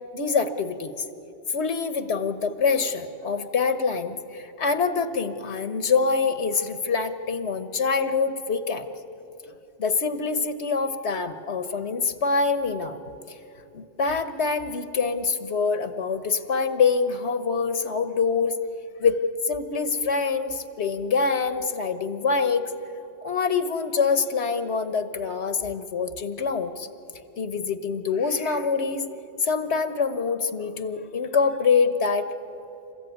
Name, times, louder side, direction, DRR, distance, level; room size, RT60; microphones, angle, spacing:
voice 1, 0.1-1.0 1.5-8.9 9.8-13.0 13.3-13.4 13.7-18.6 19.0-19.2 19.4-22.7 23.2-26.9 27.4-29.0 29.4-32.3, left 5 dB, 85° left, 11 dB, 1.5 m, -25 dB
28.5 x 15.0 x 9.5 m, 3.0 s
omnidirectional pair, 1.1 m